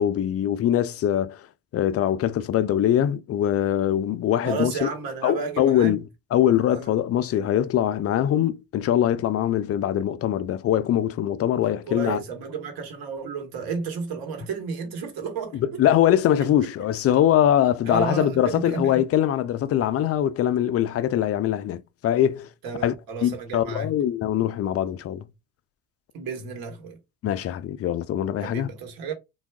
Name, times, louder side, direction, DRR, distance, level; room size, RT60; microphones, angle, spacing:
voice 1, 0.0-1.5 1.7-4.9 5.2-6.0 6.3-12.2 15.5-22.5 22.8-23.0 23.2-25.3 27.2-28.7, left 11 dB, 35° left, 0.4 m, -22 dB
voice 2, 4.4-6.0 6.7-6.8 11.6-15.6 17.8-19.0 22.6-23.9 26.1-27.0 28.4-29.1, right 5 dB, 60° right, 1.2 m, -32 dB
3.4 x 2.3 x 2.2 m
hypercardioid pair, 60°, 40 cm